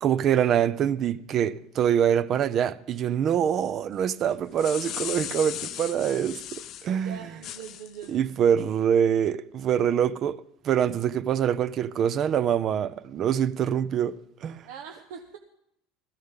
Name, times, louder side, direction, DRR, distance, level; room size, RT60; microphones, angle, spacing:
voice 1, 0.0-7.2 8.1-14.7, right 9 dB, 40° right, 0.5 m, -25 dB
sound 1, 4.3-6.9 7.4-8.1, left 12 dB, 50° left, 0.6 m, -36 dB
voice 2, 6.9-8.7 14.7-15.4, right 7 dB, 80° right, 1.2 m, -43 dB
16.5 x 14.5 x 3.8 m
cardioid pair, 135°, 0 cm